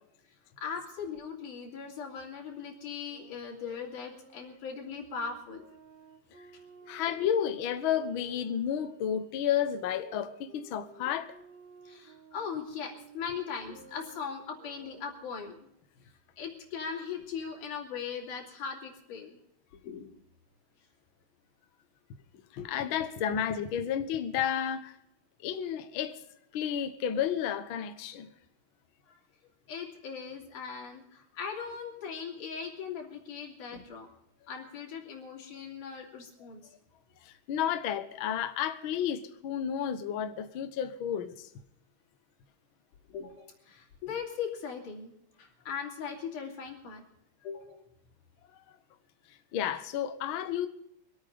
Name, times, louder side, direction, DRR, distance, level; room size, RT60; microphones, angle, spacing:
voice 1, 0.6-5.6 11.8-15.6 16.4-19.4 19.8-20.1 22.3-22.4 29.1-29.2 29.7-34.1 34.5-36.6 43.1-45.1 45.4-47.0 47.4-47.8, left 6 dB, 65° left, 4.4 m, -39 dB
Wind instrument woodwind instrument, 3.1-8.9 9.7-15.5, right 6 dB, 90° right, 3.6 m, -55 dB
voice 2, 6.9-11.3 22.5-24.9 25.4-26.2 26.5-28.3 37.2-41.5 49.5-50.7, left 9 dB, 80° left, 1.1 m, -31 dB
24.0 x 8.8 x 5.3 m
omnidirectional pair, 4.0 m